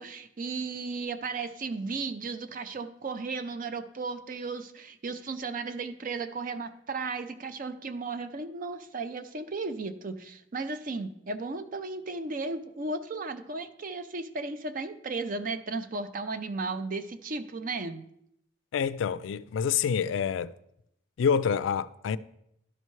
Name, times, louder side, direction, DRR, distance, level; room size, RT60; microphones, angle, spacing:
voice 1, 0.0-18.0, right 3 dB, 45° right, 0.5 m, -35 dB
voice 2, 18.7-20.5 21.2-22.2, left 7 dB, 75° left, 0.3 m, -27 dB
12.0 x 5.5 x 3.1 m
head